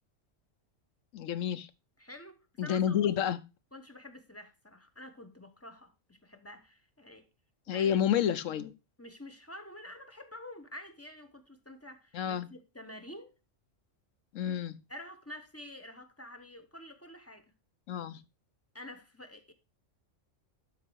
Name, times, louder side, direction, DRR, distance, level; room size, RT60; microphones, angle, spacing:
voice 1, 1.1-1.7 2.6-3.4 7.7-8.7 12.1-12.5 14.3-14.8 17.9-18.2, left 9 dB, 85° left, 1.1 m, -29 dB
voice 2, 2.0-3.0 3.7-7.3 7.7-7.9 9.0-13.3 14.9-17.5 18.7-19.5, left 1 dB, 15° left, 0.8 m, -48 dB
12.0 x 4.1 x 4.6 m
omnidirectional pair, 1.3 m